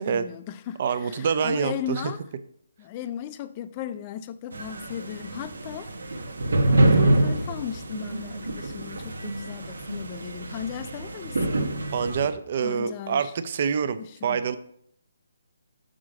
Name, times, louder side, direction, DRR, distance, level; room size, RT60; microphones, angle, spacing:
voice 1, 0.0-2.2 2.8-5.9 6.6-11.7 12.6-13.3 14.0-14.4, left 10 dB, 25° left, 0.3 m, -37 dB
voice 2, 0.8-2.0 11.9-14.6, right 6 dB, 45° right, 0.4 m, -26 dB
sound 1, 4.5-12.3, right 2 dB, 80° right, 0.8 m, -26 dB
6.3 x 3.7 x 4.9 m
hypercardioid pair, 160°, 0 cm